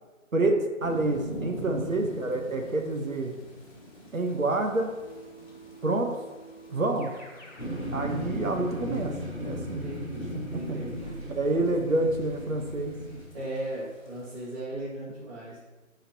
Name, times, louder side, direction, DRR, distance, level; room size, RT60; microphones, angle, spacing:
voice 1, 0.3-3.3 4.1-4.9 5.8-6.1 6.7-7.1 7.9-9.2 9.4-9.9 10.5-10.8 11.0-13.0, right 2 dB, 70° right, 3 dB, 1.2 m, -28 dB
sound 1, 0.8-14.6, equal, 35° left, 2.9 m, -46 dB
voice 2, 1.6-1.9 9.5-11.4 13.3-15.6, right 1 dB, 20° right, -13 dB, 2.4 m, -38 dB
Keyboard (musical), 5.0-7.7, right 2 dB, 55° left, 2.2 m, -49 dB
sound 2, 7.6-13.2, equal, 5° right, 1.2 m, -36 dB
12.5 x 5.6 x 3.0 m, 1.2 s
figure-of-eight pair, 150°, 41 cm